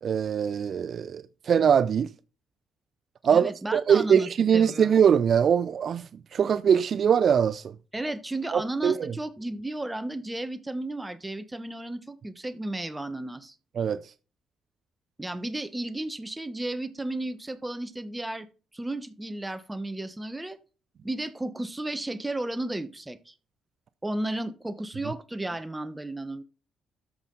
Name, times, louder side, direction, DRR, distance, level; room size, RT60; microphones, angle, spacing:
voice 1, 0.0-2.1 3.2-7.7 8.5-9.1 13.8-14.0, right 7 dB, 55° right, 0.5 m, -22 dB
voice 2, 3.3-4.9 7.9-13.5 15.2-18.5 18.7-20.6 21.0-23.3 24.0-26.4, right 1 dB, 10° right, 1.2 m, -33 dB
13.0 x 5.7 x 3.9 m
cardioid pair, 90°, 0 cm